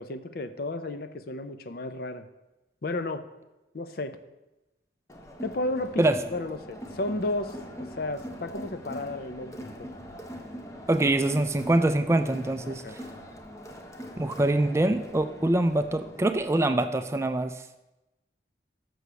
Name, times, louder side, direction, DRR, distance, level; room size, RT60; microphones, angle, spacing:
voice 1, 0.0-2.2 2.8-3.2 3.7-4.2 5.4-6.0 6.3-9.9 12.6-13.0, left 2 dB, 55° left, 10 dB, 0.6 m, -33 dB
Crowd, 5.1-16.6, equal, 15° left, 0.8 m, -42 dB
voice 2, 10.9-13.0 14.2-17.6, right 1 dB, 15° right, 9 dB, 0.3 m, -24 dB
6.5 x 6.2 x 6.8 m, 1.0 s
head